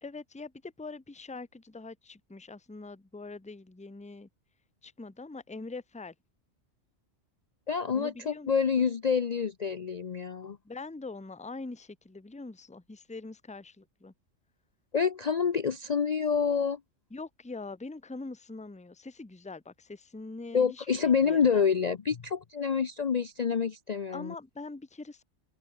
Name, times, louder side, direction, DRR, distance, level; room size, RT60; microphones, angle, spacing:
voice 1, 0.0-4.3 4.8-6.1 7.9-8.5 8.8-8.9 10.6-14.1 17.1-21.7 24.1-25.2, left 3 dB, 5° left, 0.7 m, -43 dB
voice 2, 7.7-10.6 14.9-16.8 20.5-24.3, left 6 dB, 40° left, 0.7 m, -27 dB
open air
omnidirectional pair, 1.3 m